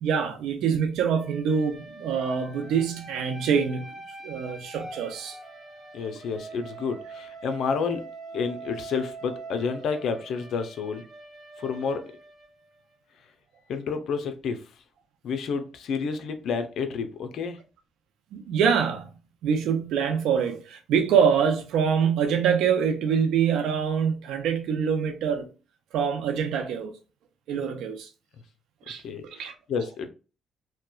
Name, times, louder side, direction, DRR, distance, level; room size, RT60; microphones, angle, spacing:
voice 1, 0.0-3.9 4.2-5.4 18.3-19.2 19.4-25.5 25.9-26.9 27.5-28.1 28.9-29.0 29.4-29.5, right 7 dB, 85° right, 0.5 m, -25 dB
sound 1, 1.1-13.0, right 3 dB, 25° right, 1.0 m, -43 dB
voice 2, 5.9-7.0 7.4-8.0 8.3-11.0 11.6-12.0 13.7-14.6 15.2-17.5 29.0-29.2 29.7-30.1, left 5 dB, 70° left, 0.5 m, -29 dB
2.8 x 2.2 x 2.3 m
cardioid pair, 90°, 0 cm